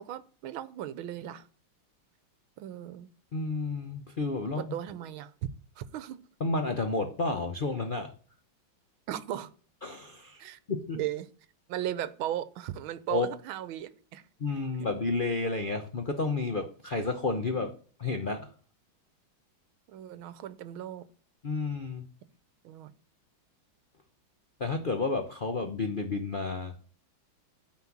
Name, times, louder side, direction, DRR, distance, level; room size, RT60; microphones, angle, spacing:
voice 1, 0.0-1.5 2.6-3.1 4.6-5.3 5.8-6.2 9.1-9.5 10.4-10.6 10.9-11.3 11.7-14.2 14.8-14.9 17.6-17.7 19.9-21.1 22.6-22.9, right 12 dB, 85° right, 1.6 m, -36 dB
voice 2, 3.3-4.7 6.4-8.1 9.8-11.0 13.1-13.3 14.4-17.7 18.0-18.5 21.4-22.1 24.6-26.7, left 3 dB, 60° left, 0.5 m, -31 dB
9.7 x 4.4 x 7.1 m
omnidirectional pair, 2.2 m